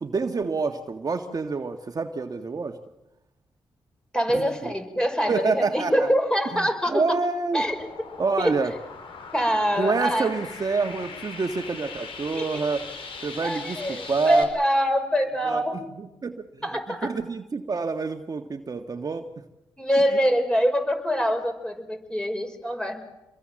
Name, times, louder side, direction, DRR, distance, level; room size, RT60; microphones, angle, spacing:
voice 1, 0.0-2.8 4.3-4.7 5.3-6.1 6.5-7.6 8.2-8.7 9.7-12.9 13.2-14.5 15.5-15.6 16.0-16.6 16.9-19.3, right 4 dB, 45° right, 5 dB, 1.7 m, -27 dB
voice 2, 4.1-7.1 7.5-7.8 8.4-8.5 9.3-10.3 12.4-12.6 13.4-14.0 14.3-15.8 16.6-17.1 19.8-23.1, equal, 10° left, 6 dB, 5.9 m, -24 dB
sound 1, 7.5-14.4, left 4 dB, 80° left, 5.1 m, -40 dB
27.5 x 22.0 x 7.7 m, 0.94 s
cardioid pair, 65°, 9 cm